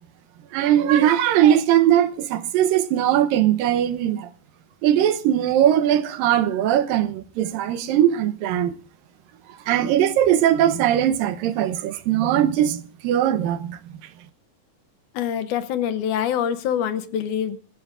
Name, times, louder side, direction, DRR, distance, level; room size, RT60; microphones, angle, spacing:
voice 1, 0.5-4.3 4.8-8.7 9.7-13.8, right 11 dB, 80° right, 2.6 m, -20 dB
voice 2, 15.1-17.6, left 9 dB, 70° left, 2.2 m, -25 dB
26.0 x 14.5 x 2.4 m
omnidirectional pair, 4.0 m